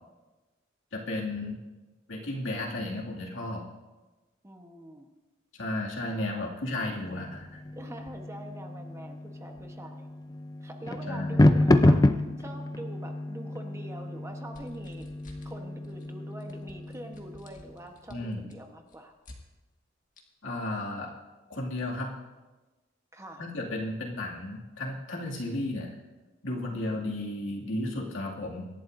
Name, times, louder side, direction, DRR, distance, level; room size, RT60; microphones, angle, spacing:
voice 1, 0.9-1.6 2.1-3.7 5.5-7.6 11.1-11.7 18.1-18.5 20.4-21.1 21.5-22.1 23.4-25.9 26.4-28.7, left 1 dB, 75° left, -2 dB, 2.3 m, -34 dB
voice 2, 4.4-5.1 6.0-6.5 7.8-10.1 10.6-15.1 15.4-19.1 23.1-23.4 26.6-27.1, right 1 dB, 15° right, 4 dB, 1.1 m, -45 dB
sound 1, 6.8-17.6, left 1 dB, 20° left, 0.5 m, -28 dB
sound 2, 14.5-15.6 15.8-16.1 16.4-19.4 20.2-20.3, left 1 dB, 40° left, 1.7 m, -52 dB
25.5 x 11.5 x 2.6 m, 1.2 s
head